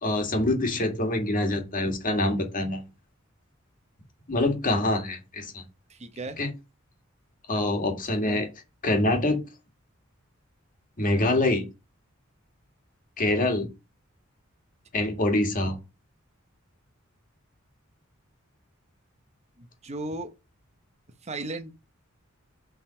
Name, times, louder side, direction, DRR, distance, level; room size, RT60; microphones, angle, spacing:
voice 1, 0.0-2.8 4.3-5.6 6.4-6.5 7.5-8.5 8.8-9.4 11.0-11.6 13.2-13.7 14.9-15.7, left 2 dB, 40° left, 1.8 m, -25 dB
voice 2, 5.9-6.4 8.3-8.4 19.6-20.3 21.2-21.7, right 2 dB, 30° right, 0.9 m, -35 dB
6.8 x 3.9 x 5.1 m
head